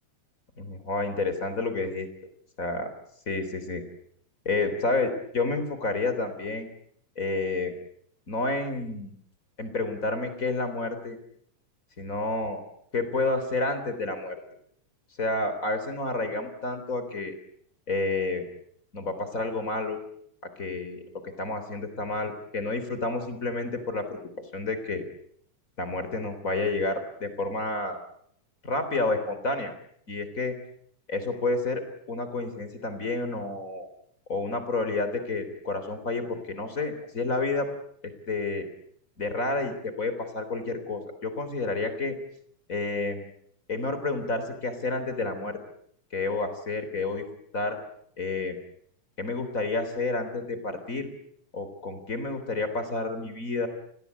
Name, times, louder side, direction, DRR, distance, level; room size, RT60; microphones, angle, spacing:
voice 1, 0.6-2.1 2.6-2.9 3.3-3.8 4.5-6.7 7.2-7.7 8.3-9.1 9.6-11.2 12.0-12.6 12.9-14.4 15.2-17.3 17.9-18.5 18.9-20.0 20.6-21.0 21.4-24.2 24.5-25.0 25.8-28.0 28.6-29.7 30.1-30.5 31.1-31.8 32.1-33.9 34.3-37.7 38.0-38.7 39.2-42.2 42.7-43.2 43.7-45.6 46.1-47.2 47.5-47.8 48.2-48.6 49.2-51.1 51.5-53.7, left 3 dB, 25° left, 10 dB, 3.7 m, -29 dB
29.5 x 21.0 x 8.3 m, 0.67 s
omnidirectional pair, 3.6 m